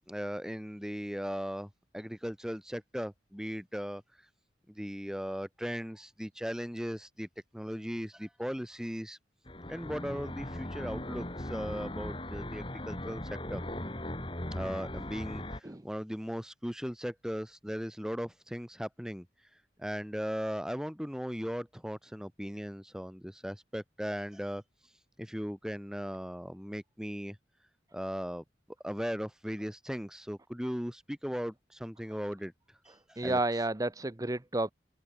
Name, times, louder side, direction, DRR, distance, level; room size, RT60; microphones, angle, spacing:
voice 1, 0.0-4.0 4.7-7.3 7.5-9.2 9.7-13.6 14.5-19.3 19.8-24.6 25.2-27.4 27.9-28.4 28.8-32.5 33.1-33.4, equal, 5° right, 3.9 m, -38 dB
sound 1, 9.5-15.6, left 1 dB, 25° left, 3.4 m, -39 dB
voice 2, 33.2-34.7, right 2 dB, 20° right, 0.8 m, -31 dB
head